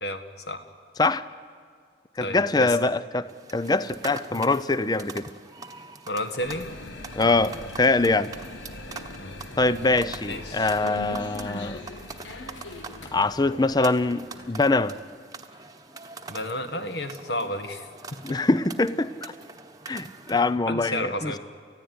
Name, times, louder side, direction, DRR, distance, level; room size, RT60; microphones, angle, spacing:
voice 1, 0.0-0.7 2.2-2.8 6.1-6.7 7.2-7.5 9.2-9.4 10.3-10.8 16.3-17.9 20.7-21.4, left 1 dB, 60° left, 7 dB, 1.8 m, -32 dB
voice 2, 2.2-5.2 7.2-8.3 9.6-11.8 13.1-14.9 18.2-19.3 19.9-21.4, left 3 dB, 20° left, 15 dB, 0.6 m, -23 dB
sound 1, 3.2-20.6, right 4 dB, 20° right, 1.1 m, -44 dB
sound 2, 6.4-15.0, left 2 dB, 85° left, 1.4 m, -41 dB
29.5 x 15.5 x 9.6 m, 2.1 s
head